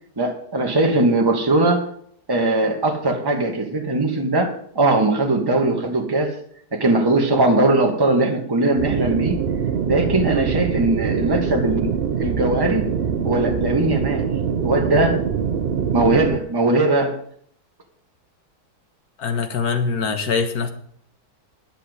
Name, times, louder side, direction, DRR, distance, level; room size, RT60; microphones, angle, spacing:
voice 1, 0.2-1.9 2.3-6.4 6.7-9.4 9.8-12.9 13.2-15.2 15.9-17.2, right 2 dB, 15° right, 1 dB, 1.6 m, -20 dB
sound 1, 8.8-16.4, right 7 dB, 50° right, 0.7 m, -23 dB
voice 2, 19.2-20.7, left 5 dB, 60° left, 7 dB, 1.8 m, -23 dB
11.5 x 6.9 x 8.1 m, 0.64 s
omnidirectional pair, 1.8 m